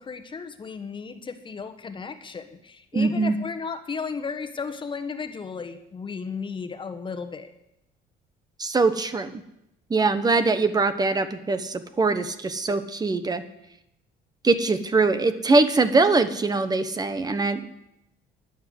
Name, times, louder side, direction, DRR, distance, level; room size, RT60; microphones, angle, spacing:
voice 1, 0.0-7.5, left 5 dB, 30° left, 8 dB, 1.5 m, -34 dB
voice 2, 2.9-3.4 8.6-9.4 9.9-13.4 14.4-17.7, right 3 dB, 25° right, 10 dB, 1.2 m, -22 dB
11.5 x 10.0 x 7.9 m, 0.84 s
cardioid pair, 110°, 17 cm